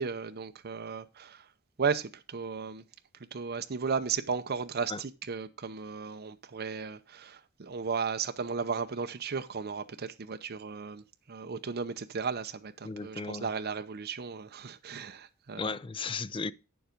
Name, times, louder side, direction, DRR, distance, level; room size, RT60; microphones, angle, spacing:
voice 1, 0.0-1.5 1.8-2.8 3.3-15.7, right 5 dB, 50° right, 0.6 m, -35 dB
voice 2, 12.8-13.5 15.6-16.5, left 4 dB, 25° left, 0.4 m, -35 dB
9.2 x 7.1 x 5.0 m
head